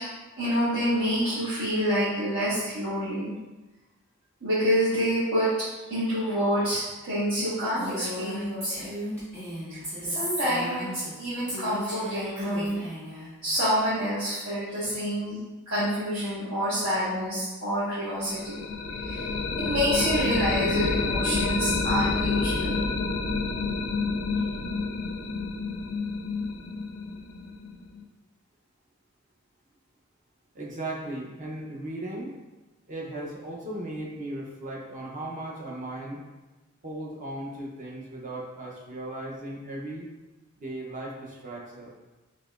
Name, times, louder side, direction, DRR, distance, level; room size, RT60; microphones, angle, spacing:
voice 1, 0.4-3.3 4.4-5.5 5.9-8.9 10.0-12.8 13.4-15.4 15.7-18.7 19.0-19.3 19.6-22.8, equal, 80° right, -13 dB, 1.2 m, -27 dB
Female speech woman speaking, 7.8-11.2 11.5-13.3, equal, 15° right, 1.3 m, -35 dB
sound 1, 18.3-28.0, left 4 dB, 70° left, 0.4 m, -28 dB
voice 2, 30.5-32.3 32.9-36.2 36.8-40.1 40.6-41.9, right 1 dB, 35° right, -3 dB, 0.6 m, -37 dB
4.0 x 2.9 x 2.3 m, 1.1 s
head